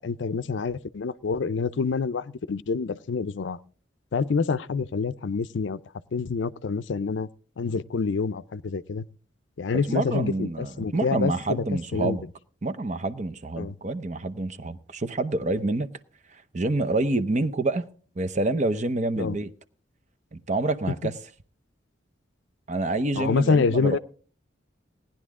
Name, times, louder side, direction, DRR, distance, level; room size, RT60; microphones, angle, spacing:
voice 1, 0.0-3.6 4.1-5.8 6.1-7.3 7.6-9.1 9.6-11.6 11.9-12.2 13.6-13.7 19.2-19.4 23.1-24.0, left 5 dB, 80° left, 0.5 m, -27 dB
voice 2, 9.9-12.2 12.6-15.9 16.5-17.9 18.2-19.5 20.3-21.1 22.7-24.0, right 2 dB, 40° right, 0.7 m, -27 dB
18.0 x 10.5 x 3.6 m
head